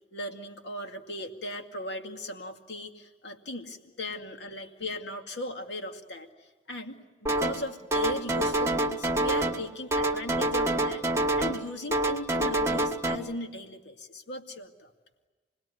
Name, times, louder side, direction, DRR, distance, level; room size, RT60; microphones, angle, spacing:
voice 1, 0.1-14.9, left 1 dB, 80° left, 4 dB, 2.3 m, -38 dB
sound 1, 7.3-7.7 7.9-9.6 9.9-11.6 11.9-13.2, right 1 dB, 15° right, 1.6 m, -27 dB
28.5 x 20.0 x 9.8 m, 1.3 s
head